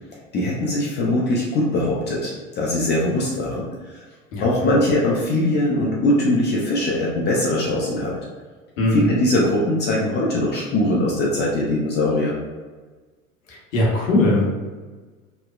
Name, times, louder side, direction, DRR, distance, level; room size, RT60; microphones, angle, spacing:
voice 1, 0.3-4.0 4.4-8.1 8.9-12.4, left 1 dB, 25° left, -4 dB, 0.5 m, -21 dB
voice 2, 8.8-9.1 13.5-14.5, left 1 dB, 75° left, -4 dB, 1.0 m, -20 dB
3.0 x 2.0 x 2.3 m, 1.4 s
hypercardioid pair, 85°, 40 cm